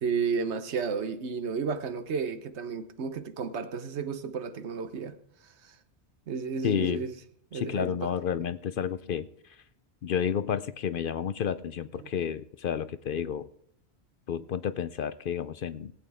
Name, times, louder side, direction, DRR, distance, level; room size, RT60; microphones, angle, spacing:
voice 1, 0.0-5.2 5.4-5.8 6.3-7.1 7.5-8.1 12.0-12.1, right 5 dB, 80° right, 1.2 m, -32 dB
voice 2, 6.6-7.0 7.5-9.6 10.0-13.5 14.3-15.9, left 8 dB, 60° left, 0.7 m, -31 dB
19.0 x 8.6 x 3.5 m
omnidirectional pair, 1.1 m